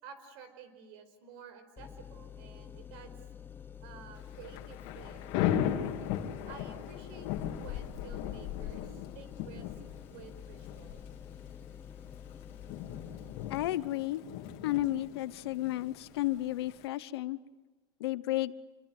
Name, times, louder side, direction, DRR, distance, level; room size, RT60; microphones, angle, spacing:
voice 1, 0.0-3.1 3.8-5.4 6.5-7.3 7.5-9.7 10.1-11.0 17.1-17.2, right 7 dB, 65° right, 11 dB, 5.0 m, -52 dB
sound 1, 1.8-13.7, left 8 dB, 15° left, 0.9 m, -48 dB
Thunder / Rain, 4.2-16.9, left 10 dB, 55° left, 2.5 m, -38 dB
voice 2, 13.5-14.2 14.6-17.4 18.0-18.5, left 16 dB, 80° left, 16 dB, 1.0 m, -32 dB
27.0 x 23.5 x 8.0 m, 1.3 s
supercardioid pair, 140°, 13 cm